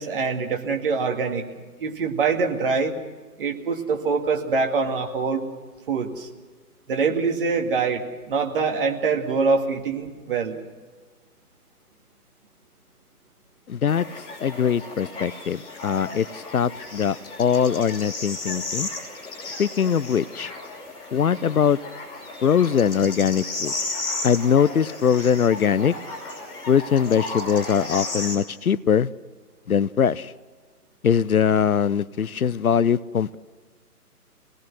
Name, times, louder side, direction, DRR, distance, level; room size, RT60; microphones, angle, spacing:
voice 1, 0.0-1.4 1.8-3.0 3.4-5.4 5.9-6.3 6.9-10.6, right 4 dB, 35° right, 3 dB, 2.2 m, -24 dB
voice 2, 13.7-14.1 14.4-18.9 19.6-20.5 21.1-21.8 22.4-23.7 24.2-25.9 26.7-29.1 29.7-30.3 31.0-33.3, left 7 dB, 65° left, 18 dB, 0.7 m, -21 dB
sound 1, 13.9-28.4, left 2 dB, 10° left, 3.2 m, -34 dB
24.5 x 19.0 x 6.2 m, 1.4 s
figure-of-eight pair, 145°, 47 cm